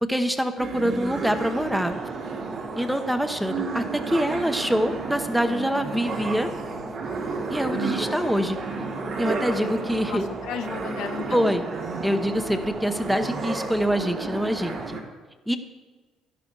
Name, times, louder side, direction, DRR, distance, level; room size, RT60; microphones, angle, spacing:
voice 1, 0.0-1.9 2.7-6.5 7.5-8.6 9.2-10.3 11.3-11.6 12.0-15.0 15.5-15.6, equal, 5° right, 8 dB, 1.0 m, -25 dB
sound 1, 0.6-15.0, right 3 dB, 65° right, 2.5 m, -33 dB
sound 2, 1.5-14.9, right 3 dB, 40° right, 1.5 m, -38 dB
voice 2, 10.1-11.4, left 7 dB, 80° left, 4 dB, 1.0 m, -34 dB
11.5 x 11.0 x 4.7 m, 1.3 s
cardioid pair, 90°, 0 cm